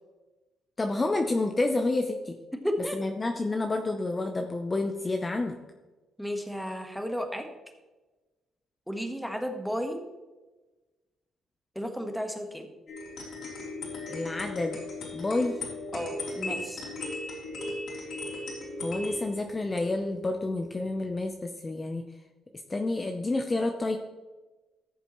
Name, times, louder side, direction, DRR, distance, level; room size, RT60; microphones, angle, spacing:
voice 1, 0.8-2.4 2.9-5.6 14.1-14.8 15.1-15.6 18.8-22.1 22.7-24.0, left 2 dB, 25° left, 4 dB, 0.7 m, -29 dB
voice 2, 2.5-3.0 6.2-7.5 8.9-10.0 11.7-12.7 15.9-16.8, equal, ahead, 4 dB, 1.4 m, -33 dB
sound 1, 12.9-21.2, left 2 dB, 65° left, 3.5 m, -37 dB
14.0 x 6.9 x 3.1 m, 1.2 s
cardioid pair, 90°, 0 cm